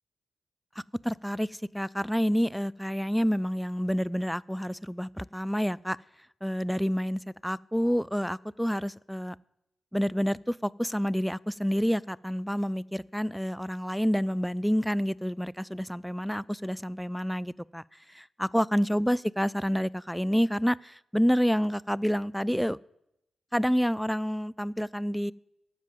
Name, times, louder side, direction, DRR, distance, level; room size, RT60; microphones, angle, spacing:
voice 1, 1.0-6.0 6.4-9.4 9.9-17.8 18.1-22.8 23.5-25.3, equal, ahead, 22 dB, 0.3 m, -28 dB
13.0 x 5.2 x 7.5 m, 0.83 s
supercardioid pair, 45°, 0 cm